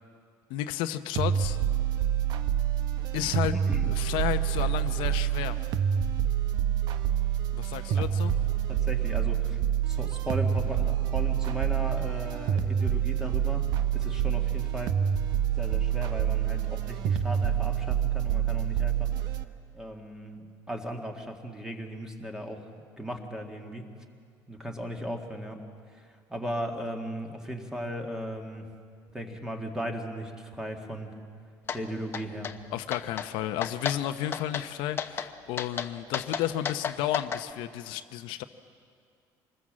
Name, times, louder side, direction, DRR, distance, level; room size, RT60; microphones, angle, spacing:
voice 1, 0.5-1.6 3.1-3.6 3.8-5.6 7.5-8.3 32.7-38.4, left 12 dB, 85° left, 9 dB, 0.9 m, -32 dB
sound 1, 1.2-19.4, right 9 dB, 60° right, 0.9 m, -27 dB
voice 2, 8.7-9.6 9.9-13.7 13.9-15.0 15.6-19.1 19.7-22.6 23.0-23.9 24.5-25.6 25.9-26.0 26.3-28.6 29.1-31.1 31.7-32.5, equal, 5° right, 3 dB, 1.9 m, -37 dB
sound 2, 31.7-31.8 32.1-32.6 32.9-33.3 33.6-34.0 34.3-34.7 35.0-35.3 35.6-37.4, left 7 dB, 30° left, 0.9 m, -32 dB
25.5 x 20.5 x 7.5 m, 2.2 s
cardioid pair, 165°, 8 cm